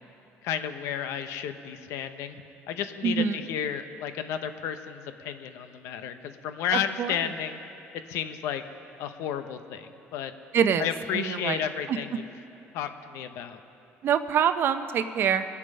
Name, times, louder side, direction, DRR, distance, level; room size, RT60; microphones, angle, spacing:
voice 1, 0.4-7.6 7.9-8.6 9.0-10.3 10.8-12.2 12.7-13.6, left 9 dB, 80° left, 9 dB, 0.9 m, -32 dB
voice 2, 3.0-3.4 6.7-7.2 10.5-10.9 11.1-11.6 11.9-12.2 14.0-15.5, right 8 dB, 50° right, 10 dB, 0.7 m, -25 dB
22.0 x 8.5 x 5.5 m, 2.7 s
cardioid pair, 120°, 5 cm